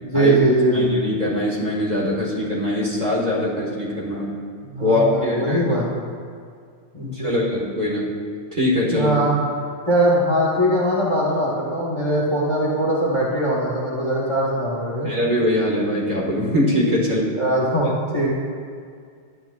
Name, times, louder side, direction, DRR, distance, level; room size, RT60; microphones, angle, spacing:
voice 1, 0.0-0.9 4.6-6.1 6.9-7.3 8.9-9.4 9.9-15.2 17.4-18.3, right 1 dB, 35° left, -5 dB, 0.4 m, -21 dB
voice 2, 0.7-4.3 4.8-5.8 7.0-8.0 8.5-9.1 15.0-17.3, left 1 dB, 25° right, -6 dB, 1.3 m, -22 dB
11.5 x 8.7 x 2.4 m, 2.1 s
omnidirectional pair, 2.4 m